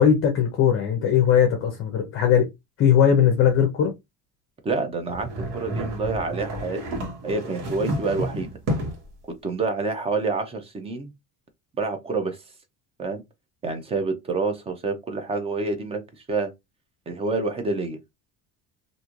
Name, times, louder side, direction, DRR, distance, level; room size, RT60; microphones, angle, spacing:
voice 1, 0.0-2.5 2.8-3.9, left 8 dB, 35° left, 0.6 m, -19 dB
voice 2, 4.6-8.5 9.4-11.1 11.8-12.4 13.0-13.2 13.6-16.0 16.3-16.5 17.1-18.0, right 3 dB, 15° right, 0.4 m, -27 dB
sound 1, 5.1-9.1, right 1 dB, 75° right, 1.3 m, -30 dB
3.0 x 2.6 x 2.4 m
cardioid pair, 155°, 39 cm